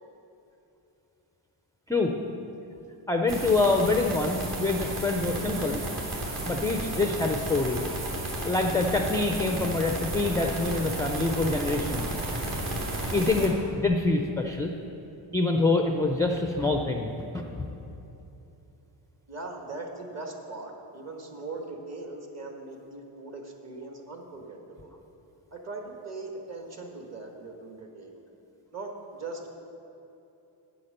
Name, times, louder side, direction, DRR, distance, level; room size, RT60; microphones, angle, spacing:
voice 1, 3.1-5.8 6.5-7.8 8.4-12.1 13.1-14.7 15.3-17.7, left 3 dB, 10° left, 3 dB, 0.4 m, -26 dB
sound 1, 3.3-13.5, right 1 dB, 50° right, 2.6 m, -33 dB
voice 2, 19.3-24.9 25.5-28.2 28.7-29.5, right 3 dB, 35° right, 2 dB, 1.4 m, -40 dB
9.1 x 8.6 x 6.6 m, 2.9 s
cardioid pair, 145°, 47 cm